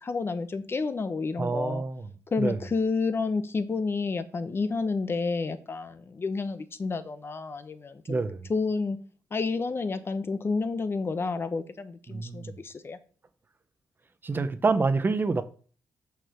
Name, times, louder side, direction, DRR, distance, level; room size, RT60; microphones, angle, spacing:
voice 1, 0.0-1.8 2.3-8.2 8.5-9.0 9.3-13.0, left 4 dB, 35° left, 0.9 m, -30 dB
voice 2, 1.4-2.1 2.4-2.6 8.1-8.5 12.1-12.6 14.2-15.4, right 3 dB, 30° right, 0.9 m, -27 dB
6.5 x 6.5 x 7.0 m
cardioid pair, 115°, 7 cm